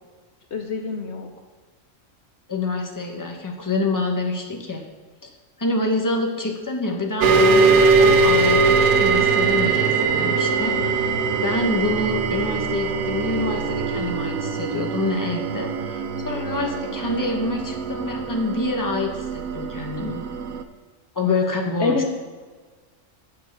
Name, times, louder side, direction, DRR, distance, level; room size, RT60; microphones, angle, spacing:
voice 1, 0.5-1.3 21.8-22.1, left 4 dB, 60° left, 4 dB, 1.0 m, -25 dB
voice 2, 2.5-4.8 5.2-5.3 5.6-11.1 11.4-20.2 21.1-22.0, left 2 dB, 15° left, 0 dB, 1.3 m, -26 dB
sound 1, 7.2-20.6, right 4 dB, 90° right, 1.1 m, -21 dB
10.0 x 6.6 x 6.8 m, 1.4 s
omnidirectional pair, 1.3 m